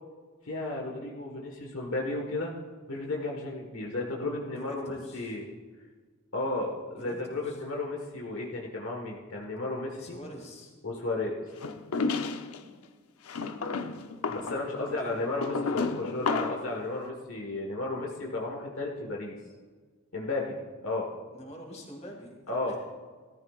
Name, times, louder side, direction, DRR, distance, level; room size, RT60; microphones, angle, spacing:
voice 1, 0.4-2.5 2.9-5.5 6.3-10.2 10.8-11.3 14.3-19.4 20.1-20.6 20.8-21.1 22.5-22.8, left 2 dB, 65° left, -1 dB, 1.6 m, -33 dB
voice 2, 4.5-5.4 6.9-7.2 7.4-7.6 10.0-10.7 12.6-12.8 14.9-15.2 21.3-22.8, equal, 30° left, 0 dB, 2.7 m, -46 dB
sound 1, 11.6-12.6 13.3-16.7, left 4 dB, 90° left, 0.8 m, -32 dB
17.5 x 13.5 x 2.5 m, 1.5 s
head